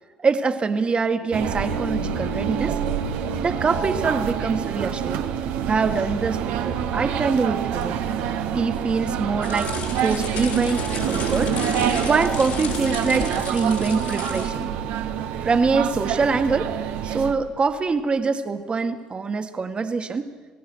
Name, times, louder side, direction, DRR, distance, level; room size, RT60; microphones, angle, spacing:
voice 1, 0.2-2.8 3.4-5.2 5.7-8.0 8.5-9.7 10.0-11.5 12.0-14.7 15.4-16.8 17.0-20.2, right 4 dB, 35° right, 8 dB, 1.8 m, -24 dB
sound 1, 1.3-17.3, right 8 dB, 75° right, 1.2 m, -26 dB
sound 2, 9.4-14.6, left 6 dB, 75° left, 4.7 m, -34 dB
26.5 x 18.0 x 6.3 m, 1.5 s
supercardioid pair, 65°, 3 cm